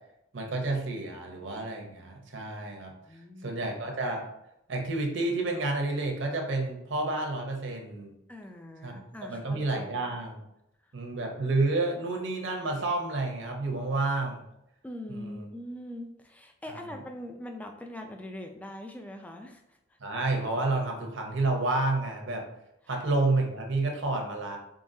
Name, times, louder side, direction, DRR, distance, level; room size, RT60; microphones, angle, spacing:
voice 1, 0.3-2.9 3.4-4.2 4.7-8.1 8.8-8.9 9.3-10.4 10.9-14.4 15.1-15.5 16.7-16.9 20.0-22.5 22.9-24.6, right 2 dB, 60° right, 1 dB, 0.7 m, -30 dB
voice 2, 3.0-3.6 8.3-10.1 10.8-10.9 14.8-19.8 22.8-23.0, left 1 dB, 5° left, 4 dB, 0.3 m, -42 dB
3.7 x 3.5 x 2.6 m, 0.83 s
head